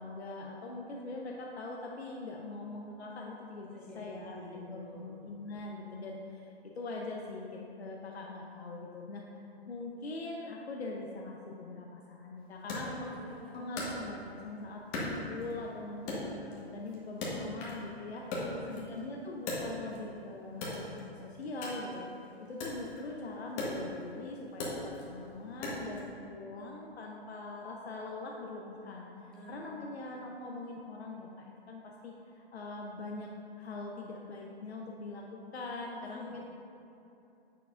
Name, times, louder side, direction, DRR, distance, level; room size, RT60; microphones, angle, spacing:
voice 1, 0.0-6.2 6.8-7.5 7.8-9.2 9.7-13.1 13.5-18.2 18.7-21.1 21.4-22.1 22.5-24.7 25.0-29.1 29.5-32.1 32.5-33.3 33.6-36.4, left 2 dB, 80° left, -1 dB, 0.8 m, -42 dB
voice 2, 3.7-5.2 12.9-13.6 18.3-18.8 29.3-29.7 36.0-36.4, equal, 5° left, -8 dB, 1.1 m, -50 dB
Wood, 12.7-14.5 14.9-15.7 16.1-17.9 18.2-20.1 20.5-26.1, left 1 dB, 25° left, 1.3 m, -39 dB
7.6 x 6.6 x 2.5 m, 2.7 s
hypercardioid pair, 140°, 32 cm